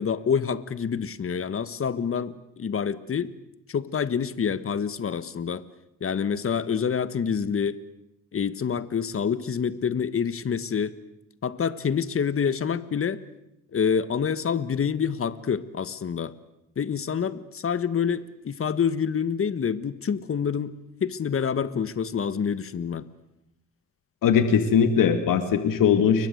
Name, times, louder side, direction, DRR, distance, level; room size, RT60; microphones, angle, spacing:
voice 1, 0.0-3.3 3.7-5.6 6.0-7.8 8.3-10.9 11.4-13.2 13.7-16.3 16.7-20.7 21.0-23.0, left 7 dB, 40° left, 15 dB, 1.5 m, -27 dB
voice 2, 24.2-26.3, left 7 dB, 75° left, 9 dB, 2.5 m, -20 dB
30.0 x 22.5 x 8.0 m, 0.85 s
cardioid pair, 110°, 33 cm